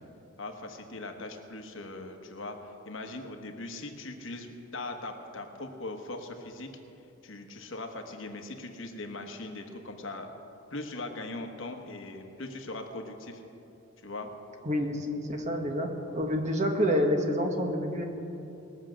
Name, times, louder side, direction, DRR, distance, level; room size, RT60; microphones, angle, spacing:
voice 1, 0.4-6.7 7.2-10.3 10.7-13.4 14.0-14.3, left 2 dB, 65° left, 4 dB, 1.3 m, -40 dB
voice 2, 14.6-18.0, equal, 35° right, 3 dB, 1.3 m, -28 dB
20.5 x 7.3 x 6.3 m, 2.9 s
head